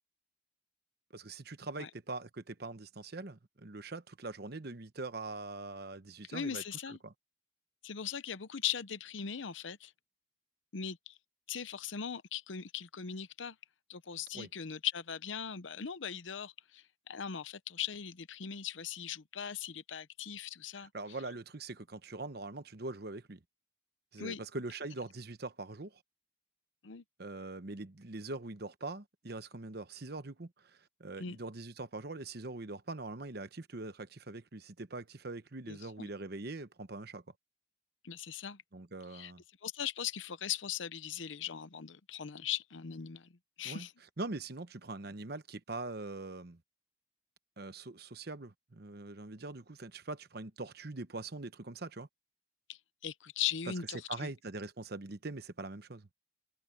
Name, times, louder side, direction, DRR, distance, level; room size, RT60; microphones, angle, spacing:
voice 1, 1.1-7.1 14.3-14.5 20.8-23.4 24.1-26.0 27.2-37.2 38.7-39.4 43.6-43.9 44.2-46.6 47.6-52.1 54.1-56.1, right 2 dB, 55° right, 1.0 m, -43 dB
voice 2, 6.3-7.0 7.8-9.9 10.7-11.2 11.5-13.6 13.9-20.9 24.2-24.4 26.8-27.0 31.2-31.4 35.7-36.1 38.0-38.6 39.1-39.3 39.6-43.3 43.6-43.9 52.7-54.3, left 8 dB, 80° left, 0.8 m, -39 dB
head